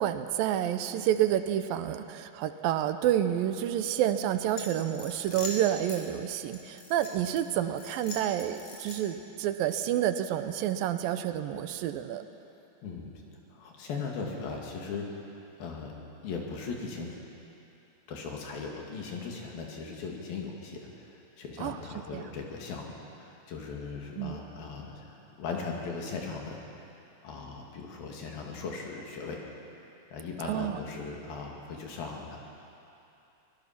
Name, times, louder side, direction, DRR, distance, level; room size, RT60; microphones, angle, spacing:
voice 1, 0.0-12.3 21.6-21.8 22.1-22.2 24.2-24.4 30.5-30.8, right 11 dB, 80° right, 10 dB, 2.5 m, -29 dB
sound 1, 4.6-6.0 6.5-7.4 7.8-9.2, left 3 dB, 50° left, 4.1 m, -41 dB
voice 2, 12.8-13.1 13.5-15.1 15.6-15.9 16.2-17.2 18.1-26.6 27.2-29.4 30.1-32.4, left 4 dB, 80° left, 0 dB, 4.1 m, -38 dB
24.5 x 18.5 x 5.9 m, 2.8 s
omnidirectional pair, 4.1 m